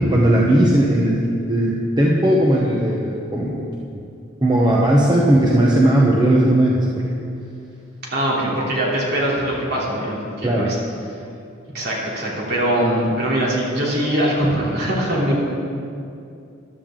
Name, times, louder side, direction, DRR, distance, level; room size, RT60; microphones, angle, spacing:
voice 1, 0.1-1.2 1.5-3.6 4.4-7.0 10.4-10.7, right 1 dB, 20° right, -4 dB, 0.9 m, -17 dB
voice 2, 8.1-10.8 11.7-15.4, right 1 dB, 50° right, -5 dB, 3.1 m, -22 dB
14.5 x 12.0 x 3.8 m, 2.5 s
head